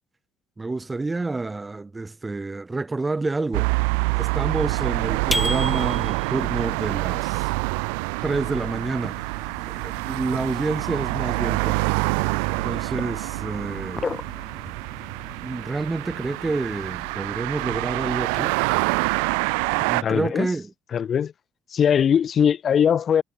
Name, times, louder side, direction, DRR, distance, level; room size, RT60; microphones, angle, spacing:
voice 1, 0.6-3.7 4.2-7.5 8.2-9.2 9.7-12.0 12.4-14.1 15.4-18.5 19.9-20.7, right 3 dB, 20° right, 1.7 m, -28 dB
sound 1, 3.5-20.0, right 37 dB, 80° right, 1.1 m, -26 dB
sound 2, 5.3-6.4, left 1 dB, 5° left, 0.9 m, -28 dB
sound 3, 8.3-17.1, left 4 dB, 30° left, 2.1 m, -40 dB
voice 2, 19.8-20.5 20.9-21.3 21.7-23.2, left 8 dB, 50° left, 1.2 m, -21 dB
hypercardioid pair, 60°, 0 cm